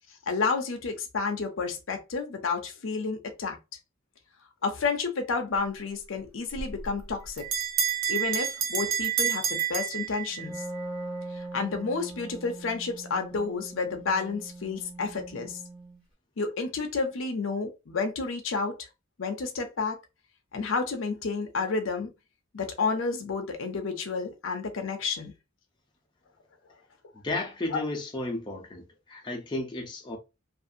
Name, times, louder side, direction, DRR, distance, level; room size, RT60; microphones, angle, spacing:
voice 1, 0.1-3.6 4.6-7.5 8.1-10.6 11.3-15.6 16.4-18.8 19.2-20.0 20.5-22.1 22.5-25.3 27.7-27.8, left 4 dB, 70° left, 0.6 m, -30 dB
Bell, 6.5-10.6, right 8 dB, 70° right, 0.6 m, -29 dB
Wind instrument woodwind instrument, 10.3-16.0, right 2 dB, 30° right, 1.4 m, -41 dB
voice 2, 27.2-30.2, left 2 dB, 25° left, 0.6 m, -33 dB
2.6 x 2.4 x 2.6 m
head